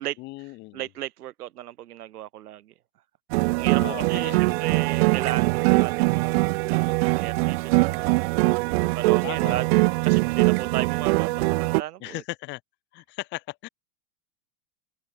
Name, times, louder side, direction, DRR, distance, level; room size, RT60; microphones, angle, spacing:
voice 1, 0.2-0.8 3.8-4.6 9.2-9.6 12.0-12.6 12.9-13.7, left 21 dB, 25° left, 0.7 m, -37 dB
voice 2, 0.7-2.7 3.3-8.3 8.9-9.7 10.0-12.2, right 13 dB, 90° right, 2.2 m, -35 dB
sound 1, 3.3-11.8, right 26 dB, 40° right, 0.9 m, -22 dB
open air
supercardioid pair, 155°, 44 cm